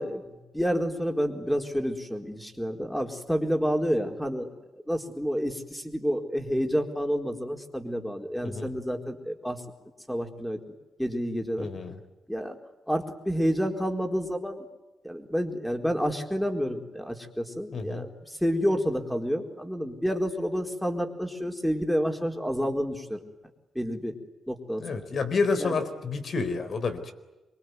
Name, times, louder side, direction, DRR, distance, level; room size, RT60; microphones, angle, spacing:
voice 1, 0.0-4.5 4.9-9.6 10.1-10.6 11.0-11.7 12.3-12.6 12.9-14.7 15.0-23.2 23.7-24.1 24.5-25.0 25.6-25.8, equal, ahead, 4 dB, 4.3 m, -29 dB
voice 2, 8.4-8.7 11.6-12.0 17.7-18.1 24.8-27.1, left 4 dB, 55° left, 10 dB, 4.2 m, -29 dB
26.5 x 23.0 x 9.5 m, 1.1 s
cardioid pair, 90°, 0 cm